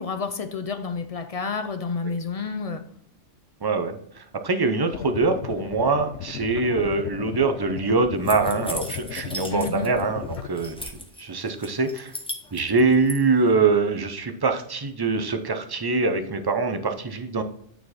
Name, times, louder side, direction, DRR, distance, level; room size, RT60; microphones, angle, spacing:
voice 1, 0.0-2.8 9.5-9.9, left 5 dB, 45° left, 0.5 m, -30 dB
voice 2, 3.6-10.9 11.2-12.1 12.5-17.4, right 4 dB, 25° right, 0.6 m, -24 dB
sound 1, 4.9-10.5, left 10 dB, 75° left, 0.9 m, -36 dB
sound 2, 8.3-10.0 10.3-11.2 11.6-13.2, left 1 dB, 5° left, 1.0 m, -36 dB
9.2 x 4.5 x 4.2 m
omnidirectional pair, 1.2 m